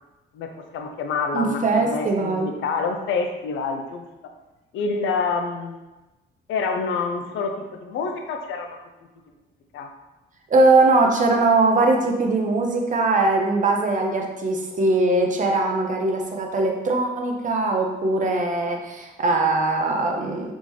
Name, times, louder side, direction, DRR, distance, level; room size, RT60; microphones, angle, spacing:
voice 1, 0.3-4.1 4.7-5.8 6.5-8.8 9.7-9.9, left 4 dB, 80° left, 3 dB, 0.6 m, -27 dB
voice 2, 1.3-2.5 10.5-20.5, right 2 dB, 40° right, 2 dB, 0.7 m, -21 dB
4.0 x 3.6 x 3.1 m, 1.1 s
cardioid pair, 90°, 20 cm